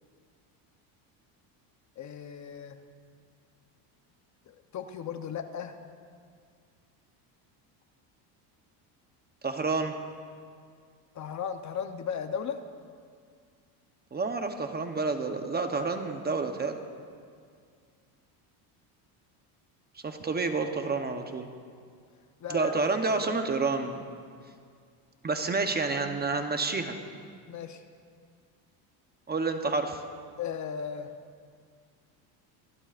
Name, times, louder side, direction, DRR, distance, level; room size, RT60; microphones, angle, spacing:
voice 1, 2.0-2.8 4.5-5.8 11.1-12.6 22.4-22.8 23.2-23.4 27.5-27.8 30.4-31.1, left 7 dB, 35° left, 7 dB, 0.8 m, -36 dB
voice 2, 9.4-9.9 14.1-16.8 20.0-21.5 22.5-24.0 25.2-27.0 29.3-30.0, right 3 dB, 20° right, 6 dB, 0.9 m, -29 dB
25.5 x 15.0 x 2.5 m, 2.1 s
cardioid pair, 125°, 48 cm